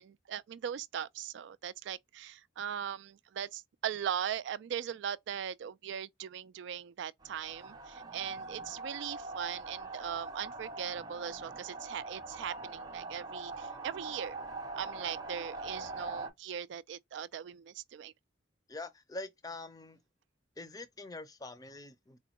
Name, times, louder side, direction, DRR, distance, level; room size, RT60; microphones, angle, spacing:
voice 1, 0.0-14.3 14.8-18.1, right 9 dB, 65° right, 0.3 m, -39 dB
sound 1, 7.2-16.3, right 3 dB, 20° right, 0.6 m, -43 dB
voice 2, 18.7-20.0 20.6-22.2, left 2 dB, 20° left, 0.5 m, -44 dB
4.1 x 2.2 x 2.9 m
head